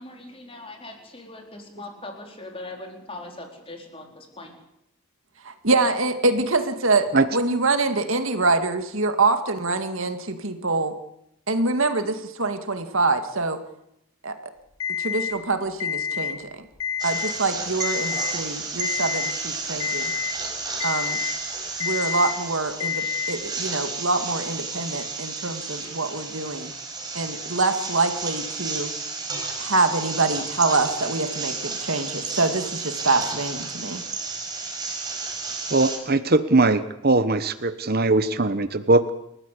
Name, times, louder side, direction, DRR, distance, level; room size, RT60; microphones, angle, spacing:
voice 1, 0.0-4.6, left 2 dB, 25° left, 2 dB, 4.1 m, -40 dB
voice 2, 5.4-10.9 11.5-13.6 14.2-14.3 15.0-16.4 17.0-20.1 20.8-21.2 21.8-26.7 27.1-28.9 29.6-34.0, right 3 dB, 65° right, 7 dB, 2.2 m, -25 dB
Alarm, 14.8-15.3 15.8-16.3 16.7-17.3 17.8-18.3 18.8-19.3 19.8-20.3 20.8-21.3 21.8-22.3 22.8-23.3, left 8 dB, 75° left, 4.6 m, -28 dB
sound 1, 17.0-36.0, right 4 dB, 20° right, 4.8 m, -32 dB
voice 3, 35.7-37.4 37.9-39.1, right 2 dB, 45° right, 11 dB, 1.0 m, -20 dB
29.5 x 14.5 x 8.4 m, 0.80 s
head